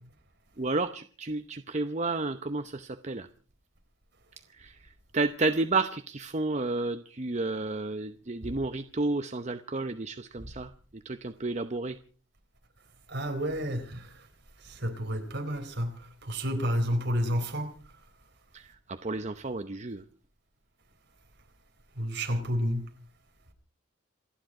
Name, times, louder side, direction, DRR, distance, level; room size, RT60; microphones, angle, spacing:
voice 1, 0.6-3.3 4.5-12.0 18.5-20.0, right 3 dB, 35° right, 0.8 m, -31 dB
voice 2, 13.1-14.3 14.6-17.8 22.0-22.9, equal, 60° right, 4.0 m, -30 dB
28.0 x 10.5 x 4.8 m
head